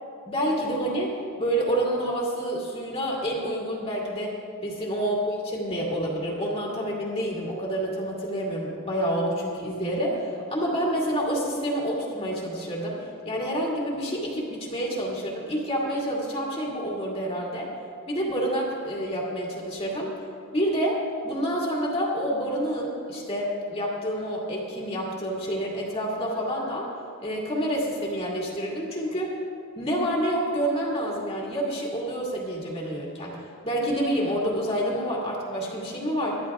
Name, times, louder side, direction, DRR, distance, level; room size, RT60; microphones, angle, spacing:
voice 1, 0.3-4.4 4.6-17.7 18.1-20.1 20.5-26.9 27.2-29.4 29.8-36.4, equal, 25° left, -3 dB, 2.3 m, -28 dB
21.0 x 12.5 x 2.4 m, 2.4 s
head